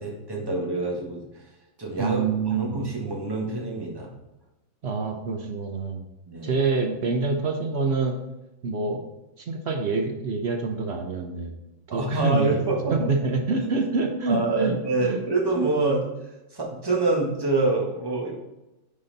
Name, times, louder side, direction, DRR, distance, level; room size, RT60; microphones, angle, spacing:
voice 1, 0.0-1.4 1.8-4.1 6.3-6.6 11.9-12.9 14.3-16.1 16.5-18.3, right 2 dB, 15° right, -2 dB, 1.2 m, -26 dB
voice 2, 2.0-2.8 4.8-6.0 6.4-8.2 8.6-9.1 9.4-11.5 11.9-12.5 13.0-14.8 15.0-15.2, right 4 dB, 65° right, 3 dB, 0.6 m, -26 dB
9.8 x 4.1 x 4.0 m, 0.98 s
omnidirectional pair, 2.1 m